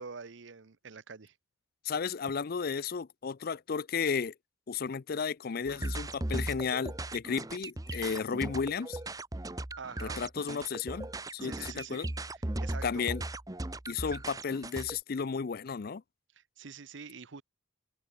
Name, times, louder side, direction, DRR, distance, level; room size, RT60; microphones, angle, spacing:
voice 1, 0.0-1.3 9.8-10.2 11.4-12.1 12.3-13.0 16.3-17.4, right 5 dB, 65° right, 0.8 m, -46 dB
voice 2, 1.8-4.3 4.7-9.0 10.0-12.1 12.8-13.2 13.9-16.0, left 5 dB, 50° left, 0.5 m, -33 dB
sound 1, 5.7-15.0, right 1 dB, 20° right, 0.8 m, -37 dB
head